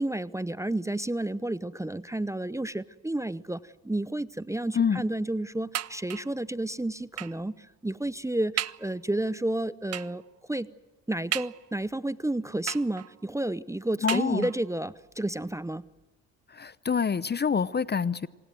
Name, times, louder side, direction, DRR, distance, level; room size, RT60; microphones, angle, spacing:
voice 1, 0.0-10.2 10.5-10.7 11.1-15.8, right 1 dB, 10° right, 17 dB, 0.7 m, -31 dB
sound 1, 5.7-6.4 7.2-7.5 8.0-8.1 8.6-8.9 9.9-10.3 11.3-11.9 12.7-13.3 14.1-14.8 15.6-15.7 16.0-16.1, right 11 dB, 45° right, 0.6 m, -35 dB
voice 2, 14.0-14.5 16.5-18.3, left 6 dB, 30° left, 19 dB, 0.7 m, -26 dB
27.0 x 18.0 x 7.7 m, 1.3 s
supercardioid pair, 65°, 35 cm